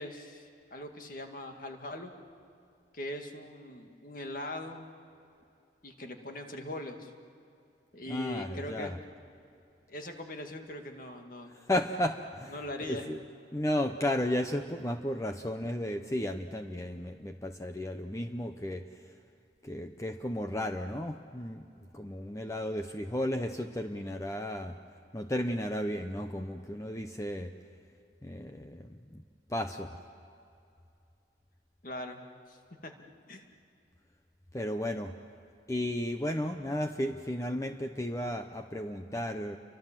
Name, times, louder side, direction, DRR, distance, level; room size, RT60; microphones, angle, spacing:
voice 1, 0.0-2.1 2.9-4.9 5.8-7.1 7.9-8.9 9.9-11.5 12.5-13.1 31.8-32.2 32.5-32.9 33.3-33.5, left 1 dB, 50° left, 4 dB, 2.1 m, -41 dB
voice 2, 8.1-9.0 11.5-13.2 13.5-19.1 19.6-24.8 25.1-27.5 28.2-29.2 29.5-30.0 34.5-35.1 35.7-39.6, left 1 dB, 15° left, 5 dB, 0.7 m, -34 dB
29.5 x 24.0 x 7.5 m, 2.6 s
head